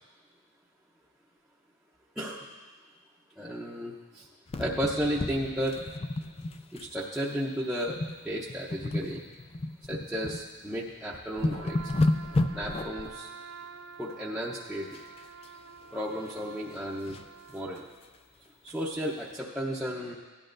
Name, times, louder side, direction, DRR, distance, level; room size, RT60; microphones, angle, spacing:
voice 1, 2.2-2.5 3.4-4.3 4.6-5.8 6.7-9.2 9.8-11.9 12.5-13.3 14.0-15.0 15.9-17.2 17.5-17.9 18.6-20.1, equal, 5° right, -7 dB, 0.7 m, -33 dB
sound 1, 4.5-6.9 7.1-7.4 7.9-8.2 8.5-10.4 10.9-11.0 11.2-13.1 14.9-15.5 15.9-17.3 17.8-17.9 18.1-18.2 18.7-18.8, left 2 dB, 25° left, 0.4 m, -32 dB
Trumpet, 11.5-17.9, right 5 dB, 60° right, 0.5 m, -47 dB
16.5 x 11.0 x 2.6 m, 1.4 s
head